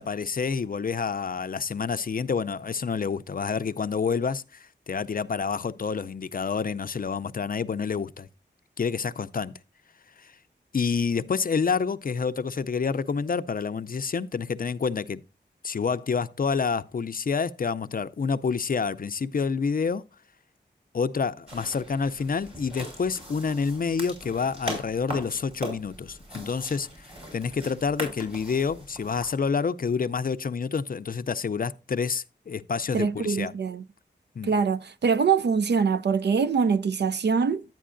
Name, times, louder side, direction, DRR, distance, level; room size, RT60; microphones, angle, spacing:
voice 1, 0.0-8.3 8.8-9.5 10.2-10.4 10.7-15.2 15.6-20.1 20.9-33.5 34.4-34.5, left 5 dB, 50° left, 0.4 m, -28 dB
sound 1, 21.5-29.3, right 1 dB, 30° right, 6.1 m, -40 dB
voice 2, 32.9-33.8 34.4-37.6, right 5 dB, 65° right, 0.5 m, -24 dB
11.0 x 9.1 x 2.5 m
wide cardioid pair, 95°, 19 cm